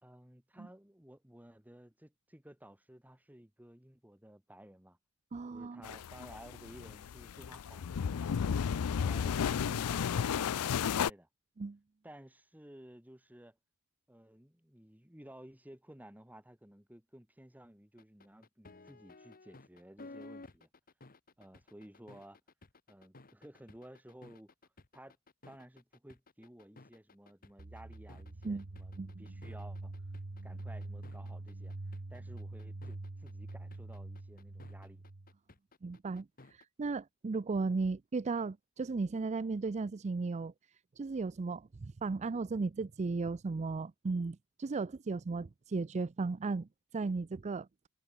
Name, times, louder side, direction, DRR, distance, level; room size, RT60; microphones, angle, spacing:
voice 1, 0.0-5.0 5.5-8.4 9.0-11.3 12.0-13.6 14.1-20.7 21.4-22.4 22.9-24.5 24.9-25.2 25.5-29.9 30.4-31.7 32.1-35.1, right 1 dB, 5° right, 2.3 m, -55 dB
voice 2, 5.3-5.8 11.6-11.8 28.4-28.6 29.0-29.1 35.8-40.5 41.0-47.7, right 4 dB, 30° right, 0.4 m, -35 dB
sound 1, 5.8-11.1, left 7 dB, 80° left, 0.4 m, -33 dB
slow rock, 18.0-36.6, left 2 dB, 40° left, 1.5 m, -55 dB
sound 2, 27.6-35.3, right 2 dB, 65° right, 1.2 m, -45 dB
head